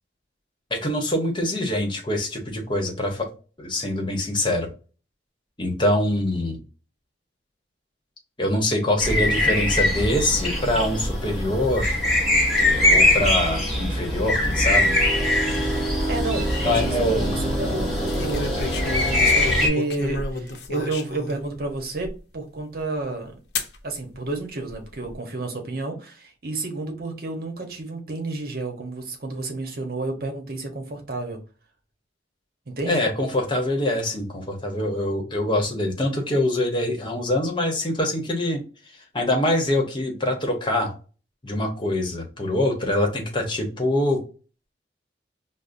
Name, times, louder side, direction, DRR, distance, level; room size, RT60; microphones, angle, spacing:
voice 1, 0.7-3.3 3.6-4.7 5.6-6.6 8.4-11.9 12.9-15.0 16.6-17.8 32.9-38.6 39.1-40.9 41.4-44.2, left 1 dB, 25° left, 2 dB, 0.9 m, -24 dB
sound 1, 9.0-19.7, left 1 dB, ahead, 1.3 m, -22 dB
voice 2, 15.9-18.5 19.1-23.4 23.8-31.4 32.7-33.0, right 2 dB, 55° right, 4 dB, 0.9 m, -31 dB
sound 2, 18.1-21.4 22.0-22.1 23.6-23.8 24.7-25.1, left 3 dB, 75° left, 0.7 m, -31 dB
5.3 x 2.0 x 2.5 m, 0.35 s
head